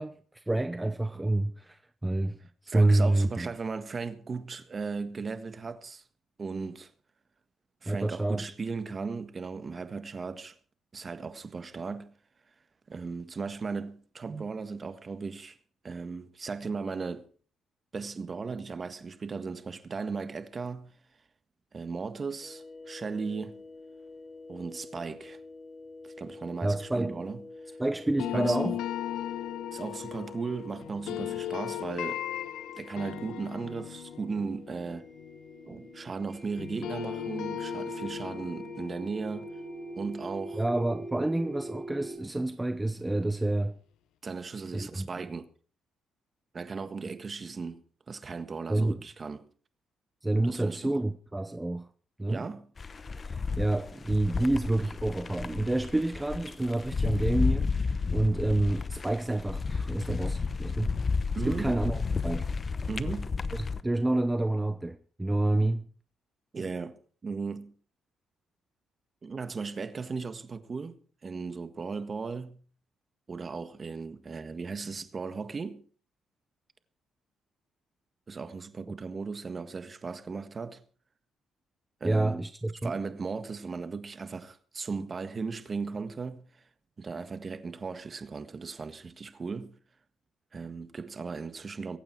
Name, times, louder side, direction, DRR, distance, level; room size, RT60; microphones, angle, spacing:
voice 1, 0.0-2.4 2.6-3.5 7.9-8.5 26.6-27.2 27.8-28.8 40.6-43.8 44.7-45.1 48.7-49.0 50.2-51.9 52.2-52.5 53.2-60.9 61.4-62.5 63.5-65.8 78.9-79.0 82.0-82.9, right 2 dB, 10° right, 0.8 m, -28 dB
voice 2, 2.7-6.0 6.4-6.9 7.8-10.6 10.9-12.1 12.9-15.6 15.8-17.3 17.9-20.9 21.7-23.6 24.5-25.4 26.0-27.4 28.3-28.8 29.7-32.2 32.8-35.1 35.7-39.5 40.0-40.6 44.2-45.5 46.5-49.5 50.4-50.9 52.3-52.7 61.4-61.8 62.9-63.3 66.5-67.7 69.2-72.6 73.3-75.8 78.3-80.8 82.0-82.4 82.8-86.5 87.0-89.7 90.5-92.0, right 4 dB, 35° right, 1.6 m, -36 dB
sound 1, 22.4-42.2, right 1 dB, 10° left, 5.5 m, -45 dB
sound 2, 28.2-36.3 36.6-41.5, left 12 dB, 85° left, 0.7 m, -38 dB
sound 3, 52.8-63.8, left 4 dB, 35° left, 0.9 m, -32 dB
23.5 x 8.9 x 4.6 m
cardioid pair, 90°, 0 cm